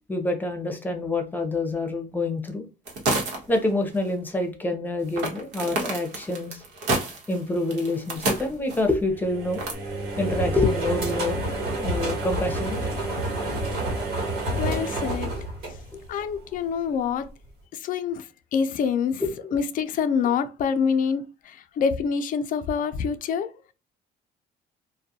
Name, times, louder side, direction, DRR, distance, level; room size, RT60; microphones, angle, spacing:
voice 1, 0.1-2.7 3.5-6.6 7.3-9.6 10.2-11.5 11.8-12.8 15.9-16.0 19.2-19.5, left 2 dB, 10° left, 0.7 m, -27 dB
sound 1, 2.9-3.6 3.9-4.0 5.2-8.9 9.5-9.7, right 2 dB, 90° right, 1.0 m, -28 dB
sound 2, 9.1-16.4, right 1 dB, 70° right, 1.3 m, -29 dB
voice 2, 14.6-15.3 16.1-17.3 17.7-19.2 19.5-23.7, left 6 dB, 55° left, 0.4 m, -26 dB
2.3 x 2.2 x 2.7 m
cardioid pair, 110°, 17 cm